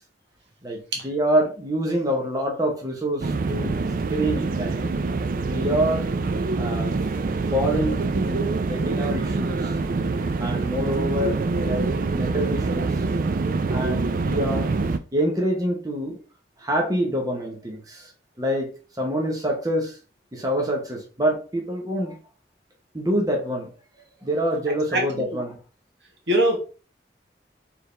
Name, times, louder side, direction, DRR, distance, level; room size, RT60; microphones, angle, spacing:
voice 1, 0.6-3.8 4.1-5.0 5.5-6.1 6.6-6.9 7.5-9.8 10.4-13.0 13.7-14.7 15.1-16.2 16.6-18.1 18.4-20.0 20.3-22.2 22.9-23.7 24.2-25.6, equal, 20° right, 1.0 m, -26 dB
sound 1, 3.2-15.0, right 3 dB, 50° right, 0.4 m, -25 dB
voice 2, 24.9-25.2 26.3-26.6, right 1 dB, 75° right, 1.4 m, -22 dB
4.5 x 3.5 x 3.3 m
head